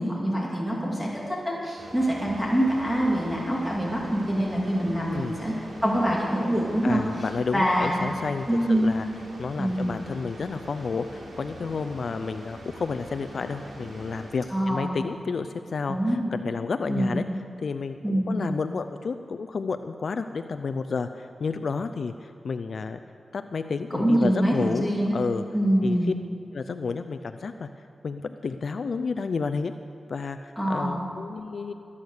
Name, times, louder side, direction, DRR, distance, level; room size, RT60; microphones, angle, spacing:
voice 1, 0.0-5.5 5.8-7.0 7.5-8.1 8.5-8.9 9.6-10.0 14.5-14.9 15.9-16.2 16.9-17.2 18.0-18.4 23.9-25.2 25.5-26.1 30.6-31.1, right 1 dB, 5° right, -4 dB, 2.6 m, -25 dB
sound 1, 1.8-14.8, equal, 85° right, 3.4 m, -43 dB
voice 2, 6.8-9.1 9.4-17.2 17.6-23.0 23.3-25.4 25.8-26.0 26.5-27.7 28.0-29.7 30.1-31.7, left 4 dB, 65° left, 9 dB, 0.5 m, -31 dB
19.5 x 8.6 x 6.6 m, 2.8 s
wide cardioid pair, 85°, 0 cm